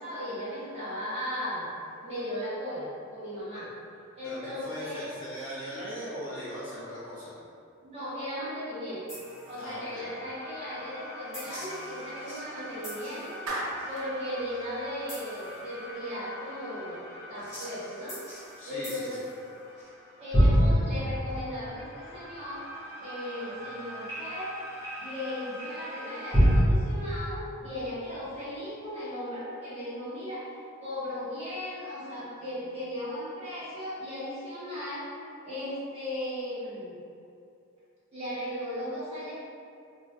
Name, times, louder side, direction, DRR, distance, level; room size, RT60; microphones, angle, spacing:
voice 1, 0.0-1.7 2.0-3.7 4.2-5.1 7.8-9.0 9.4-13.4 13.9-18.2 18.6-19.2 20.2-22.6 23.0-24.6 25.0-30.5 30.8-35.1 35.4-36.9 38.1-39.4, left 1 dB, 30° right, -11 dB, 1.1 m, -36 dB
voice 2, 4.2-7.3 9.6-10.1 18.6-19.1, equal, 60° left, -10 dB, 1.3 m, -39 dB
sound 1, 9.1-26.6, equal, 15° left, 1.4 m, -32 dB
Clapping, 13.5-14.1, right 1 dB, 80° right, 0.6 m, -34 dB
3.7 x 3.2 x 2.2 m, 2.5 s
head